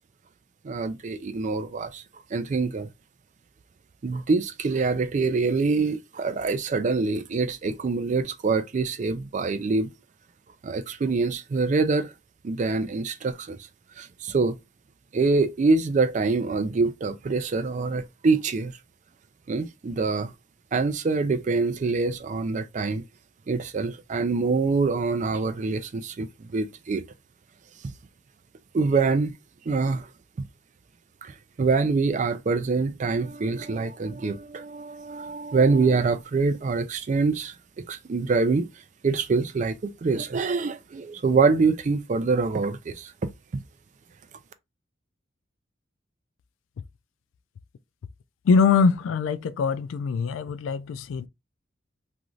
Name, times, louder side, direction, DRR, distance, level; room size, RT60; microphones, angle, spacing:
voice 1, 0.6-2.0 2.3-2.9 4.0-9.9 10.6-12.1 12.4-13.6 14.0-14.6 15.1-18.7 19.5-20.3 20.7-23.0 23.5-27.0 28.7-29.3 29.7-30.1 31.2-38.7 39.0-43.1, right 4 dB, 40° right, 0.3 m, -25 dB
voice 2, 48.4-51.3, left 5 dB, 80° left, 0.3 m, -23 dB
2.5 x 2.4 x 3.0 m
head